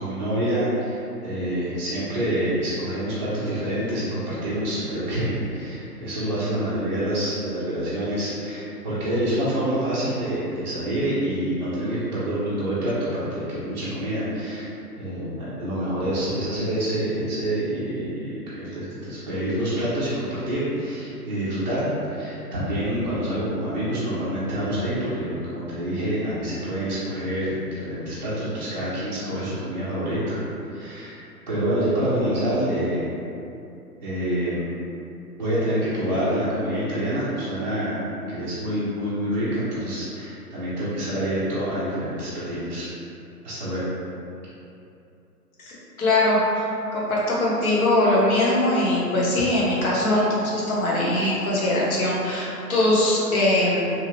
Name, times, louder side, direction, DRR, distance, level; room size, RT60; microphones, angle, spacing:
voice 1, 0.0-14.7 15.0-30.4 30.7-31.2 31.5-33.1 34.0-34.7 35.4-38.0 38.3-42.9 43.4-43.8, right 1 dB, 30° right, -14 dB, 0.4 m, -27 dB
voice 2, 45.6-46.6 46.9-53.9, left 1 dB, 60° left, -6 dB, 1.0 m, -21 dB
2.8 x 2.4 x 2.9 m, 2.7 s
hypercardioid pair, 140°, 49 cm